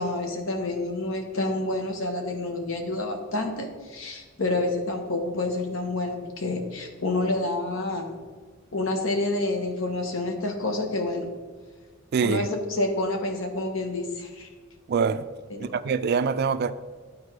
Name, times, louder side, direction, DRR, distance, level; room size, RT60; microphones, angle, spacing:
voice 1, 0.0-8.2 8.7-11.3 12.2-14.5 15.5-15.8, left 2 dB, 85° left, 1.1 m, -28 dB
voice 2, 12.1-12.5 14.9-15.2 15.6-16.7, right 5 dB, 50° right, 0.3 m, -24 dB
12.0 x 4.4 x 3.3 m
head